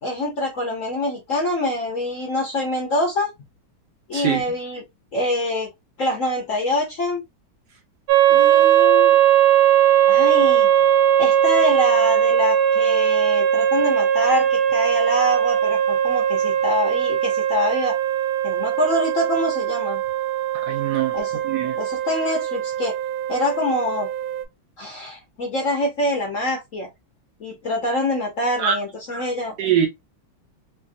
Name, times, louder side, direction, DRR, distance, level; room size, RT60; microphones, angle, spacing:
voice 1, 0.0-3.3 4.1-4.8 5.1-5.7 6.0-7.2 8.3-9.2 10.1-10.7 11.2-18.0 18.4-20.0 21.1-21.3 21.8-22.9 23.3-24.1 24.8-26.9 27.4-29.5, left 1 dB, 55° left, 0.9 m, -25 dB
sound 1, 8.1-24.4, right 10 dB, 85° right, 1.4 m, -19 dB
voice 2, 20.6-21.1 21.4-21.8 28.6-28.7 29.6-29.9, right 9 dB, 70° right, 1.1 m, -22 dB
3.2 x 2.5 x 2.4 m
omnidirectional pair, 2.2 m